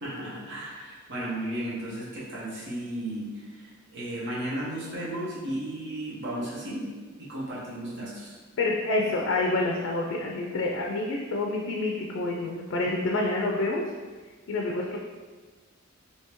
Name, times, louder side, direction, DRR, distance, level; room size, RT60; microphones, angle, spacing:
voice 1, 0.0-6.9 7.2-8.4, right 1 dB, 60° right, -7 dB, 1.0 m, -34 dB
voice 2, 8.6-13.8 14.5-15.0, left 2 dB, 60° left, 0 dB, 0.4 m, -28 dB
3.4 x 2.8 x 3.0 m, 1.4 s
head